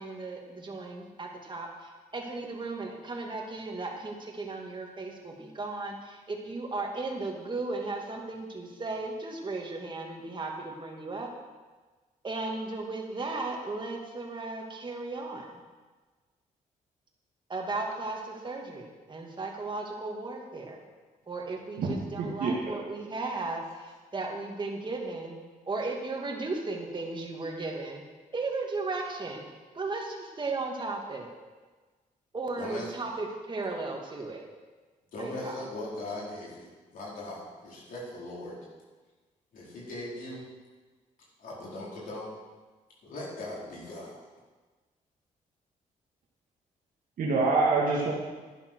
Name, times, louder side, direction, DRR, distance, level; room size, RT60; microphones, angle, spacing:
voice 1, 0.0-11.3 12.2-15.5 17.5-20.8 21.3-25.4 25.7-28.0 28.3-29.5 29.7-31.3 32.3-34.5 35.2-35.5, right 3 dB, 35° right, 1 dB, 2.4 m, -35 dB
voice 2, 21.8-22.5 47.2-48.1, right 3 dB, 75° right, -4 dB, 2.1 m, -26 dB
voice 3, 32.6-32.9 35.1-38.6 39.5-40.4 41.4-42.3 43.0-44.2, left 1 dB, 75° left, -6 dB, 4.5 m, -39 dB
11.5 x 11.0 x 4.7 m, 1.3 s
cardioid pair, 85°, 14 cm